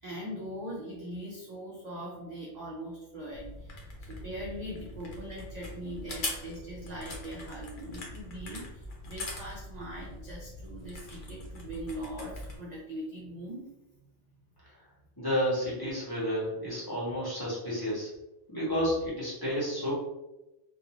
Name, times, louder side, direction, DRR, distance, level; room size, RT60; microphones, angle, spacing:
voice 1, 0.0-3.7 4.0-13.7, equal, 55° right, -3 dB, 0.5 m, -41 dB
sound 1, 3.3-12.6, left 1 dB, 55° left, 0.7 m, -42 dB
voice 2, 15.2-18.1 18.5-19.9, equal, 20° left, -8 dB, 0.8 m, -31 dB
2.4 x 2.2 x 2.9 m, 0.98 s
omnidirectional pair, 1.2 m